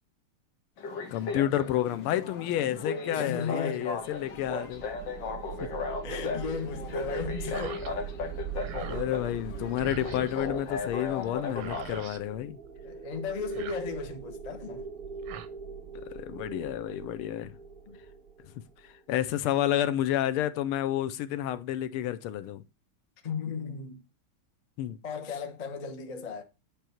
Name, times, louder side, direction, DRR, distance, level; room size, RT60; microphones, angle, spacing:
sound 1, 0.8-12.0, left 4 dB, 60° left, 1.9 m, -36 dB
voice 1, 1.1-4.9 5.6-5.7 8.9-12.6 15.9-17.5 19.1-22.6 24.8-25.0, left 12 dB, 85° left, 1.5 m, -30 dB
voice 2, 3.1-3.9 6.0-7.8 11.0-11.1 12.8-14.9 16.9-17.0 17.9-18.0 23.2-24.0 25.0-26.4, left 6 dB, 35° left, 0.6 m, -36 dB
sound 2, 4.0-19.2, right 6 dB, 40° right, 0.8 m, -41 dB
sound 3, 7.5-7.9 8.3-9.1 9.8-10.5 11.2-11.3 11.5-12.2 13.4-14.2 15.0-15.5, right 9 dB, 85° right, 1.7 m, -43 dB
9.2 x 3.4 x 4.3 m
omnidirectional pair, 2.4 m